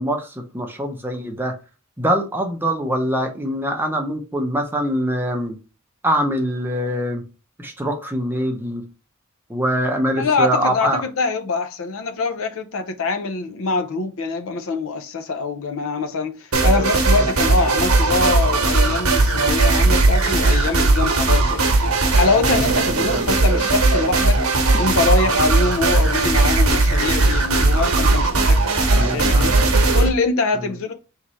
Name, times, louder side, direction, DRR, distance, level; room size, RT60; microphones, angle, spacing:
voice 1, 0.0-1.5 2.0-5.6 6.0-7.2 7.6-8.8 9.5-11.0 22.5-23.3 29.0-30.1 30.5-30.7, equal, 10° right, 0.7 m, -24 dB
voice 2, 10.1-10.9 11.2-16.3 16.6-21.7 22.1-24.4 24.8-28.6 28.9-29.5 29.9-30.9, left 3 dB, 65° left, 0.6 m, -23 dB
sound 1, 16.5-30.1, right 2 dB, 80° right, 1.0 m, -17 dB
3.6 x 3.1 x 4.1 m
head